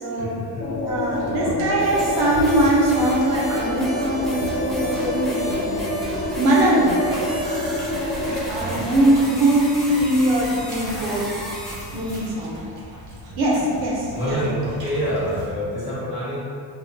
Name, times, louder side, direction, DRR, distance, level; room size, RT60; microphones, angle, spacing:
voice 1, 0.1-0.8 1.2-1.7 8.6-8.9 13.3-13.4 14.1-16.4, equal, 15° right, -12 dB, 1.2 m, -27 dB
sound 1, 0.6-8.4, left 1 dB, 70° left, 0.5 m, -27 dB
voice 2, 0.8-6.0 6.4-7.0 8.5-11.3 11.9-12.6 13.4-14.4, right 1 dB, 85° right, -4 dB, 0.7 m, -21 dB
sound 2, 1.1-15.5, equal, 50° right, 0.7 m, -38 dB
sound 3, 1.8-12.3, right 1 dB, ahead, 0.5 m, -33 dB
2.3 x 2.1 x 2.6 m, 2.3 s
cardioid pair, 115°, 37 cm